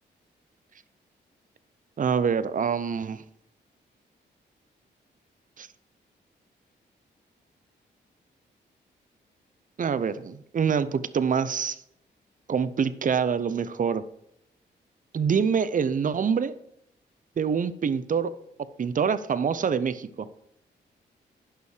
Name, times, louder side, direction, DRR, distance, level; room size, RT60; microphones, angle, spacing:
voice 1, 2.0-3.2 5.6-5.7 9.8-11.8 12.5-14.0 15.1-16.5 17.4-18.3 18.8-20.3, right 6 dB, 45° right, 15 dB, 0.6 m, -25 dB
11.0 x 5.5 x 4.9 m, 0.77 s
supercardioid pair, 55°, 19 cm